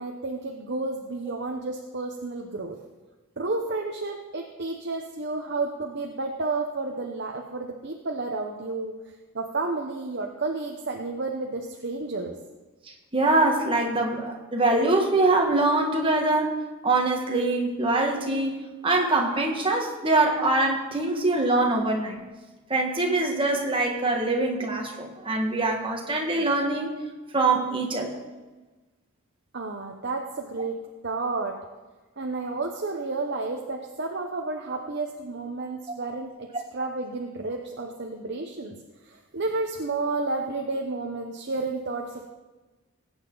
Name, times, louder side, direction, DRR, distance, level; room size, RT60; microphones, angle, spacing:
voice 1, 0.0-2.8 3.4-8.9 9.3-12.4 29.5-30.8 31.0-31.6 32.2-36.5 36.7-38.8 39.0-42.3, right 3 dB, 50° right, 2 dB, 0.9 m, -31 dB
voice 2, 13.1-22.2 22.7-26.9 27.3-28.2, right 2 dB, 25° right, 1 dB, 1.7 m, -24 dB
20.0 x 8.9 x 4.0 m, 1.2 s
head